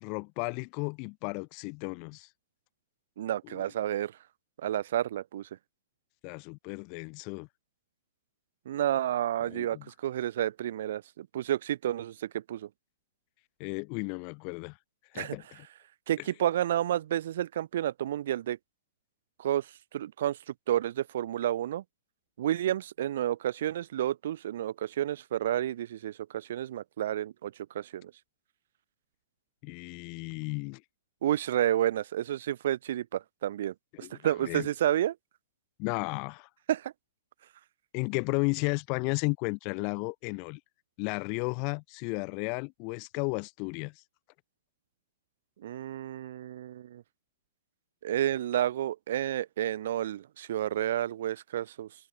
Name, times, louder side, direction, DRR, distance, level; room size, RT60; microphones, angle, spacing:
voice 1, 0.0-2.3 3.4-3.6 6.2-7.5 9.4-9.8 13.6-14.8 15.1-15.7 29.6-30.8 33.9-34.7 35.8-36.5 37.9-40.6 41.0-43.9, left 37 dB, 25° left, 1.7 m, -34 dB
voice 2, 3.2-4.1 4.6-5.5 8.7-12.7 15.1-15.4 16.1-18.6 19.4-20.4 20.7-21.8 22.4-28.1 31.2-35.2 36.7-36.9 45.6-47.0 48.0-51.9, right 11 dB, 50° right, 2.2 m, -30 dB
hypercardioid pair, 175°, 0 cm